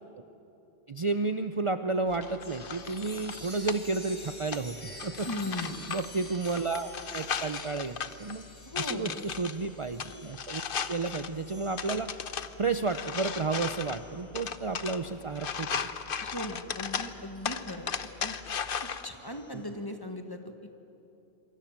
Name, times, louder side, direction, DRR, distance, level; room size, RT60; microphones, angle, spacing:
voice 1, 0.9-5.3 5.6-8.4 8.8-10.6 10.9-12.1 12.6-15.7, right 3 dB, 35° right, 9 dB, 0.6 m, -32 dB
sound 1, 2.1-19.1, left 6 dB, 60° left, 1.0 m, -37 dB
Chime, 2.4-16.4 16.8-19.7, left 1 dB, 85° left, 4.2 m, -50 dB
voice 2, 5.2-5.8 8.6-9.2 16.2-18.4 18.8-20.7, left 1 dB, 20° left, 5 dB, 1.6 m, -38 dB
27.0 x 24.0 x 7.5 m, 2.9 s
omnidirectional pair, 1.1 m